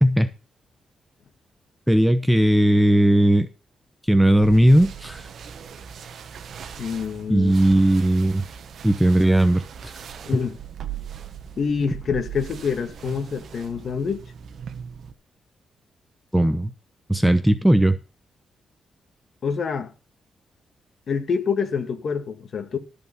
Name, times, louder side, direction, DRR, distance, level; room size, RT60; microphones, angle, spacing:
voice 1, 1.9-3.5 4.1-5.3 7.3-8.4 8.8-9.9 16.3-16.7 17.1-18.0, right 1 dB, 5° right, 0.9 m, -17 dB
sound 1, 4.4-15.1, right 8 dB, 60° right, 1.3 m, -39 dB
voice 2, 6.8-7.5 10.3-10.6 11.6-14.2 19.4-19.9 21.1-22.8, left 6 dB, 45° left, 1.9 m, -26 dB
13.5 x 6.8 x 5.7 m
wide cardioid pair, 150°, 0 cm